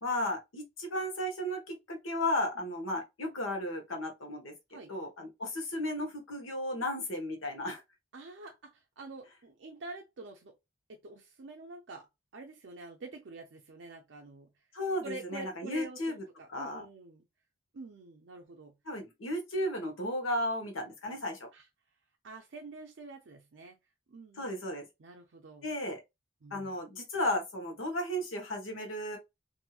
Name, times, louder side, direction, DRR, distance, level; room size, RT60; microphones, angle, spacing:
voice 1, 0.0-4.5 4.9-7.8 14.7-16.2 16.5-16.8 18.9-21.5 24.4-24.8 25.6-26.0 26.5-29.2, left 1 dB, 80° left, 1.0 m, -34 dB
voice 2, 8.1-10.5 10.9-12.1 12.3-14.5 15.0-17.2 17.7-18.7 21.5-21.7 22.2-23.8 24.1-24.5 25.0-25.7 26.4-26.7, right 3 dB, 60° right, 0.5 m, -47 dB
2.8 x 2.6 x 2.3 m
head